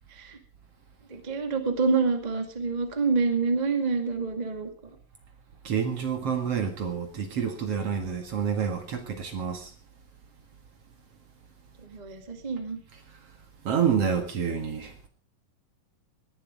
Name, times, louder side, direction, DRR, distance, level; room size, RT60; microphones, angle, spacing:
voice 1, 1.1-4.7 11.8-12.8, right 4 dB, 15° right, 1.5 m, -27 dB
voice 2, 5.6-9.7 13.6-15.1, right 7 dB, 50° right, 2.6 m, -28 dB
19.0 x 11.5 x 5.0 m
omnidirectional pair, 3.9 m